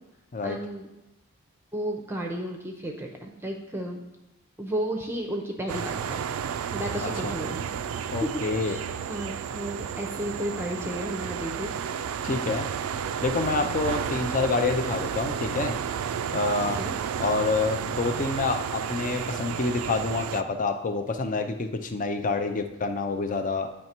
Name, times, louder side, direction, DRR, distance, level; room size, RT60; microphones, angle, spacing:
voice 1, 0.4-0.9 1.7-4.0 4.6-6.2 6.7-7.6 8.2-11.7 13.6-13.9 16.8-16.9, right 1 dB, 10° right, 2 dB, 0.6 m, -33 dB
sound 1, 5.7-20.4, right 7 dB, 65° right, 0.3 m, -32 dB
voice 2, 7.0-7.3 8.1-8.8 12.2-12.7 13.2-15.8 16.3-16.8 17.2-23.7, left 3 dB, 35° left, 7 dB, 0.5 m, -27 dB
9.3 x 3.2 x 4.4 m, 0.95 s
head